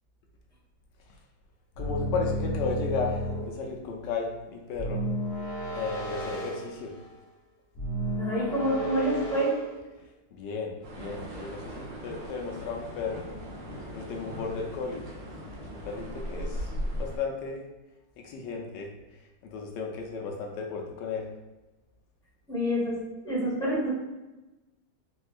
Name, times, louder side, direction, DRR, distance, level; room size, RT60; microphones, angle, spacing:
sound 1, 1.7-3.7 4.7-7.2 7.7-9.8, equal, 50° left, 0.7 m, -33 dB
voice 1, 1.8-5.1 5.7-7.0 10.3-13.3 13.9-15.1 15.6-17.7 18.2-21.3, left 4 dB, 75° left, 1 dB, 1.1 m, -34 dB
voice 2, 8.2-9.5 22.5-23.0 23.2-23.9, equal, 5° left, -8 dB, 0.9 m, -27 dB
sound 2, 10.8-17.2, equal, 70° right, 1.4 m, -38 dB
4.2 x 2.3 x 2.5 m, 1.1 s
omnidirectional pair, 2.1 m